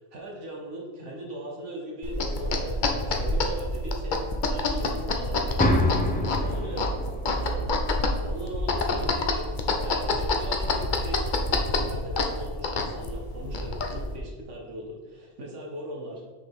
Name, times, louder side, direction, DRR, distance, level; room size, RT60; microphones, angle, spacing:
voice 1, 0.0-4.2 4.5-5.9 6.2-7.0 7.3-9.5 9.8-11.4 11.8-16.2, right 1 dB, 80° right, -1 dB, 1.5 m, -39 dB
sound 1, 2.0-14.2, left 2 dB, 50° left, 0.8 m, -28 dB
sound 2, 5.6-9.6, left 1 dB, 10° left, 0.6 m, -28 dB
6.4 x 5.6 x 3.6 m, 1.4 s
omnidirectional pair, 1.2 m